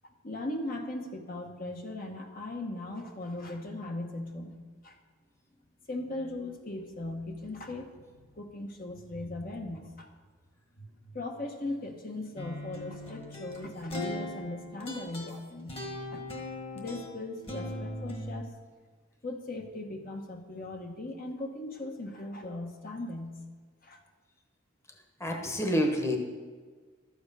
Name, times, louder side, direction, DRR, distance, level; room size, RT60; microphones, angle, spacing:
voice 1, 0.0-5.0 5.9-10.1 10.8-16.3 16.7-18.5 19.2-23.4 23.8-24.0, left 2 dB, 45° left, 3 dB, 1.1 m, -38 dB
sound 1, 12.4-18.5, left 1 dB, 30° left, 1.5 m, -40 dB
voice 2, 25.2-26.2, equal, 15° left, 3 dB, 1.1 m, -28 dB
12.5 x 7.8 x 5.4 m, 1.5 s
head